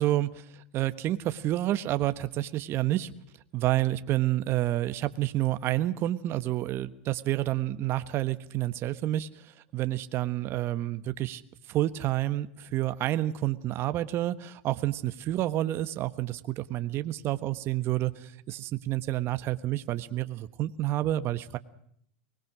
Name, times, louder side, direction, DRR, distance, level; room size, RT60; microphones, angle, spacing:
voice 1, 0.0-3.1 3.5-11.4 11.7-21.6, right 14 dB, 40° right, 12 dB, 1.3 m, -29 dB
24.5 x 20.5 x 6.2 m, 0.69 s
supercardioid pair, 120°, 6 cm